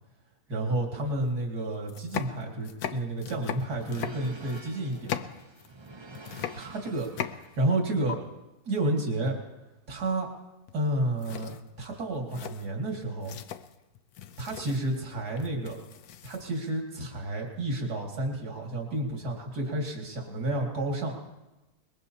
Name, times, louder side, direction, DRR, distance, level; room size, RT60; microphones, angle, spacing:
voice 1, 0.5-5.2 6.6-8.2 8.6-9.4 9.9-10.3 10.7-13.4 14.4-15.8 16.2-21.2, right 1 dB, 85° right, 0 dB, 2.7 m, -31 dB
sound 1, 1.2-1.3 1.8-5.9 6.1-7.8 8.1-8.2 10.7-10.9 11.2-16.7, left 9 dB, 75° left, 1.2 m, -39 dB
sound 2, 2.8-7.7, right 3 dB, 30° right, 0.5 m, -49 dB
22.5 x 21.0 x 2.8 m, 1.0 s
omnidirectional pair, 1.7 m